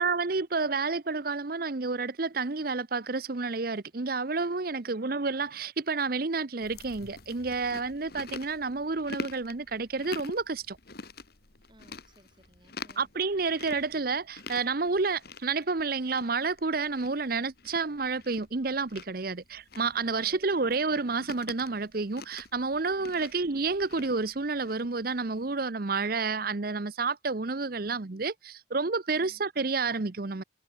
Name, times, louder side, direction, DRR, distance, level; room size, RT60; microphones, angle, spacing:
voice 1, 0.0-10.8 13.0-30.4, right 4 dB, 50° right, 0.8 m, -30 dB
Chewing mastication, 6.6-25.5, left 3 dB, 55° left, 2.5 m, -46 dB
voice 2, 11.7-13.1 20.1-20.5 23.0-23.2 29.1-29.4, right 1 dB, 25° right, 5.9 m, -59 dB
head